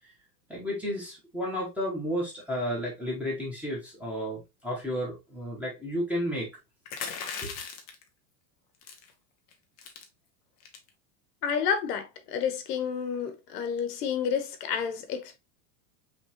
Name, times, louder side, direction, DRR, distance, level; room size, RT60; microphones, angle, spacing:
voice 1, 0.5-6.5 7.4-7.5, equal, 5° right, 1.1 m, -32 dB
sound 1, 6.9-8.0 8.8-9.1 9.5-9.6 9.8-10.0 10.6-10.9, left 6 dB, 25° left, 0.4 m, -37 dB
voice 2, 11.4-15.4, left 7 dB, 70° left, 1.2 m, -30 dB
5.4 x 3.3 x 2.9 m
supercardioid pair, 175°, 49 cm